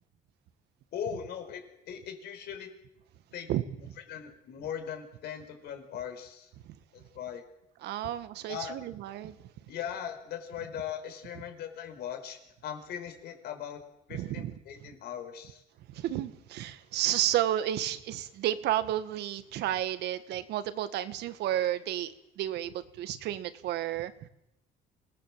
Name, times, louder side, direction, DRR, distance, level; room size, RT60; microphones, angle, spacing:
voice 1, 0.9-2.7 3.3-3.5 3.8-6.5 7.1-7.4 8.5-8.8 9.7-13.8 14.1-15.6, left 8 dB, 75° left, 7 dB, 4.8 m, -39 dB
voice 2, 7.8-9.4 14.1-14.5 15.9-24.1, right 12 dB, 80° right, 12 dB, 1.7 m, -31 dB
26.0 x 18.5 x 7.6 m, 0.83 s
cardioid pair, 110°, 17 cm